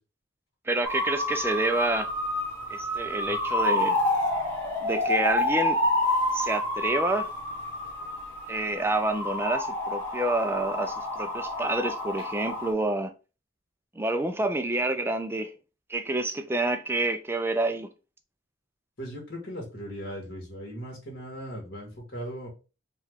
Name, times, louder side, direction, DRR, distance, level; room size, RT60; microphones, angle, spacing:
voice 1, 0.7-2.1 2.7-4.0 4.8-5.8 6.3-7.3 8.5-13.1 14.0-15.5 15.9-17.9, right 2 dB, 10° right, 0.3 m, -28 dB
sound 1, 0.8-12.7, left 1 dB, 10° left, 1.2 m, -29 dB
voice 2, 19.0-22.5, equal, 50° left, 1.5 m, -38 dB
4.5 x 2.4 x 3.4 m
head